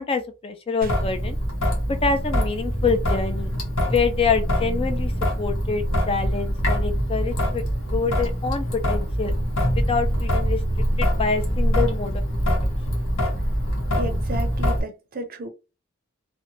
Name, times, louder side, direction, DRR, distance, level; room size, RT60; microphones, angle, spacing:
voice 1, 0.0-1.4 1.9-3.5 3.9-5.1 5.4-7.6 7.9-9.3 9.7-10.6 11.0-12.4, left 5 dB, 25° left, 0.3 m, -26 dB
Traffic noise roadway noise / Drip / Trickle dribble, 0.8-14.8, equal, 75° left, 1.0 m, -24 dB
voice 2, 14.0-15.5, right 1 dB, 45° right, 0.5 m, -33 dB
2.8 x 2.1 x 2.7 m
head